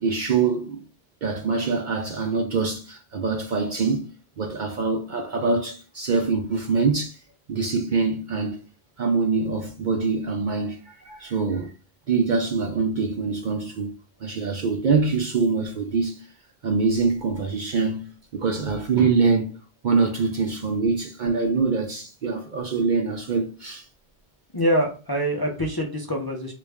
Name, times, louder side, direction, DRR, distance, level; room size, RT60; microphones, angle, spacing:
voice 1, 0.0-0.8 1.2-4.1 4.4-7.2 7.5-8.6 9.0-11.7 12.1-13.9 14.2-16.3 16.6-19.6 19.8-23.9, right 4 dB, 55° right, 0.5 m, -24 dB
voice 2, 24.5-26.5, equal, 30° left, 0.4 m, -24 dB
3.2 x 2.5 x 3.4 m
omnidirectional pair, 1.1 m